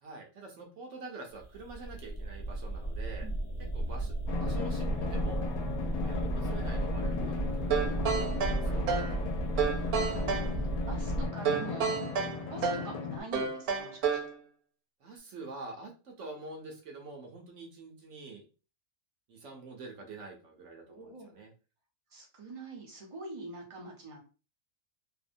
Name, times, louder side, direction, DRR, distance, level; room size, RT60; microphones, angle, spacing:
voice 1, 0.0-3.3 3.7-5.5 6.0-8.9 15.0-18.5 19.3-21.5, right 3 dB, 65° right, 0 dB, 0.9 m, -46 dB
sound 1, 1.4-11.3, right 2 dB, 40° left, 0.8 m, -34 dB
Drum, 4.3-13.2, left 5 dB, 85° left, 1.1 m, -36 dB
sound 2, 7.7-9.2 9.6-10.5 11.5-12.9 13.3-14.3, right 6 dB, 90° right, 1.1 m, -30 dB
voice 2, 9.7-12.0 12.5-14.2 20.9-21.3 22.1-24.2, right 2 dB, 35° right, 0 dB, 0.5 m, -45 dB
2.7 x 2.1 x 2.5 m, 0.34 s
omnidirectional pair, 1.5 m